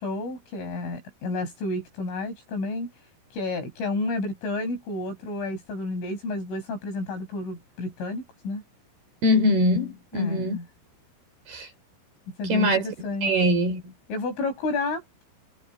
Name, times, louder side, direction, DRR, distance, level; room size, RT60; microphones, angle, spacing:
voice 1, 0.0-2.9 3.3-8.6 10.1-10.7 12.3-13.5 14.1-15.0, left 2 dB, 70° left, 10.5 m, -31 dB
voice 2, 9.2-10.6 11.5-11.7 12.4-12.8 13.2-13.9, left 1 dB, 50° right, 7.0 m, -22 dB
omnidirectional pair, 5.8 m